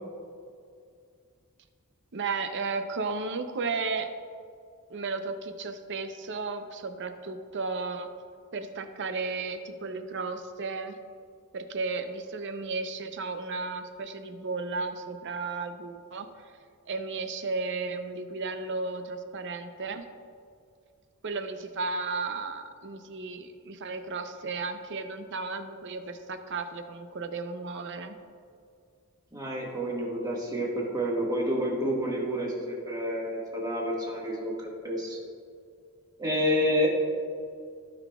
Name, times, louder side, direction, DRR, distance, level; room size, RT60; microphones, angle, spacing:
voice 1, 2.1-4.1 4.9-8.1 8.5-11.0 11.5-16.3 16.9-20.0 21.2-28.1, right 4 dB, 55° right, 8 dB, 0.6 m, -34 dB
voice 2, 29.3-34.5 34.8-35.2 36.2-36.9, equal, 20° right, -4 dB, 1.7 m, -29 dB
15.5 x 5.9 x 2.4 m, 2.3 s
head